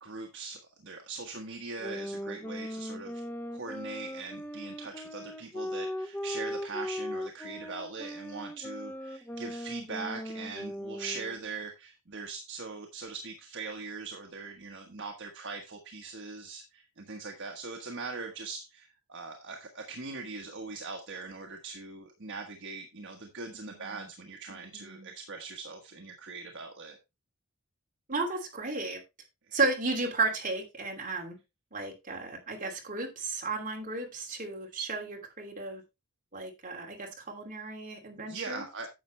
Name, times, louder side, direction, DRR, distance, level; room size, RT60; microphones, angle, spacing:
voice 1, 0.0-3.2 3.5-27.0 29.5-29.6 38.2-38.9, right 4 dB, 55° right, 2 dB, 1.3 m, -41 dB
sound 1, 1.8-11.5, equal, 10° left, 0.5 m, -38 dB
voice 2, 23.6-24.1 24.5-25.1 28.1-29.0 29.5-31.4 31.7-35.8 36.3-38.6, right 3 dB, 35° right, 1 dB, 2.8 m, -34 dB
10.0 x 7.3 x 3.3 m, 0.24 s
head